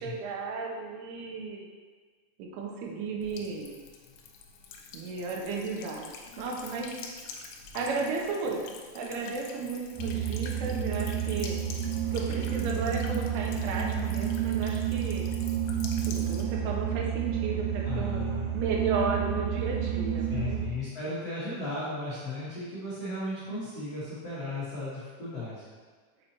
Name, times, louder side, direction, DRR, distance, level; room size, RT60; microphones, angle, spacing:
voice 1, 0.0-1.7 2.4-3.7 4.9-6.1 6.4-6.9 7.8-8.6 9.0-11.6 12.1-15.2 16.1-18.2 18.5-20.6 21.4-21.5, right 4 dB, 90° right, -1 dB, 3.3 m, -34 dB
Buzz / Water tap faucet / Trickle dribble, 3.2-16.4, left 5 dB, 90° left, 3.0 m, -46 dB
sound 1, 10.0-20.6, right 8 dB, 70° right, 2.1 m, -30 dB
voice 2, 17.8-18.5 20.3-25.7, left 2 dB, 70° left, -13 dB, 1.5 m, -35 dB
6.6 x 5.5 x 2.9 m, 1.5 s
omnidirectional pair, 5.4 m